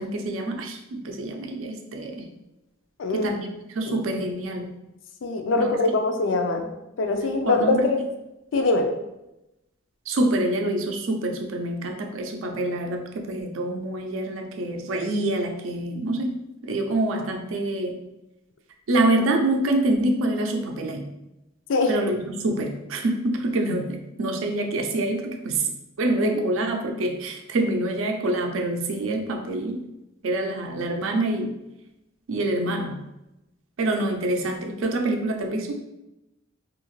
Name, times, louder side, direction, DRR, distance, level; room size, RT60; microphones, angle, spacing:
voice 1, 0.0-2.3 3.1-4.8 5.6-5.7 7.5-7.9 10.1-18.0 18.9-21.1 21.9-25.7 26.0-29.8 30.2-31.5 32.3-33.0 33.8-35.8, right 1 dB, 90° right, 3 dB, 0.4 m, -26 dB
voice 2, 3.0-3.3 3.9-4.2 5.2-6.7 7.0-8.0 8.5-8.9 21.7-21.9, left 3 dB, 70° left, 5 dB, 0.4 m, -23 dB
2.7 x 2.5 x 3.0 m, 0.94 s
head